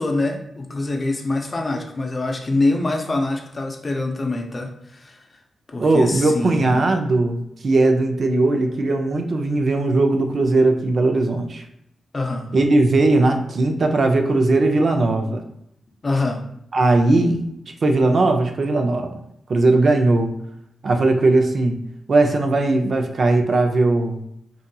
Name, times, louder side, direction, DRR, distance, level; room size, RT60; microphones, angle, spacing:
voice 1, 0.0-5.2 5.7-6.7 12.1-12.5 15.3-15.4 16.0-16.4, left 2 dB, 40° left, 2 dB, 0.5 m, -25 dB
voice 2, 5.8-11.6 12.5-15.4 16.7-17.5 17.8-19.1 19.5-20.3 20.8-21.8 22.1-24.2, right 2 dB, 60° right, 5 dB, 0.4 m, -18 dB
2.7 x 2.6 x 2.2 m, 0.76 s
supercardioid pair, 50°, 0 cm